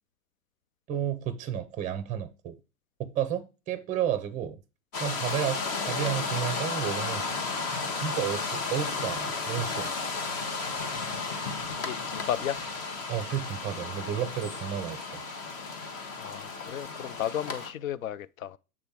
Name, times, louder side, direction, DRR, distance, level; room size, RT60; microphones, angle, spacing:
voice 1, 0.9-2.6 3.0-4.6 5.0-7.4 7.9-9.9 13.1-15.2, right 9 dB, 15° right, 0.6 m, -32 dB
sound 1, 4.9-17.7, left 4 dB, 30° left, 1.2 m, -33 dB
voice 2, 11.7-12.6 16.2-18.6, left 11 dB, 60° left, 0.6 m, -34 dB
7.4 x 3.3 x 4.3 m
hypercardioid pair, 110°, 46 cm